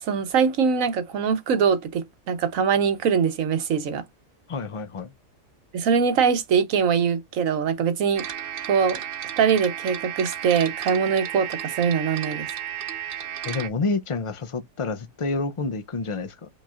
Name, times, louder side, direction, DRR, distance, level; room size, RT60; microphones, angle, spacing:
voice 1, 0.0-4.0 5.7-8.2 8.7-9.0 9.4-12.5, right 6 dB, 75° right, 1.3 m, -22 dB
voice 2, 4.5-5.1 13.4-16.5, left 3 dB, 60° left, 0.3 m, -28 dB
sound 1, 8.2-13.7, right 10 dB, 55° right, 0.7 m, -33 dB
5.5 x 3.5 x 2.4 m
omnidirectional pair, 1.4 m